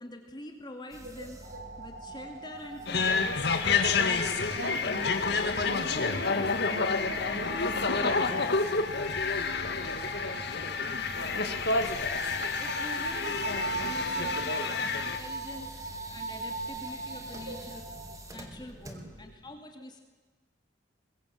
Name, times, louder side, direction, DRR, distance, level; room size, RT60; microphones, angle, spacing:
voice 1, 0.0-1.4 1.8-3.2 12.6-15.7 16.1-17.8 18.3-20.0, left 1 dB, 25° left, 4 dB, 2.6 m, -45 dB
sound 1, 0.9-19.3, right 1 dB, 20° right, 2.8 m, -48 dB
sound 2, 1.4-18.2, right 2 dB, 50° right, 3.7 m, -40 dB
sound 3, 2.9-15.2, left 4 dB, 65° left, 2.1 m, -29 dB
voice 2, 4.5-8.8 11.0-11.1 12.1-12.2 13.5-13.6 14.2-14.7 15.5-15.6 17.5-17.6 19.0-19.2, equal, 70° right, 3 dB, 7.0 m, -43 dB
23.5 x 22.5 x 7.8 m, 1.3 s
head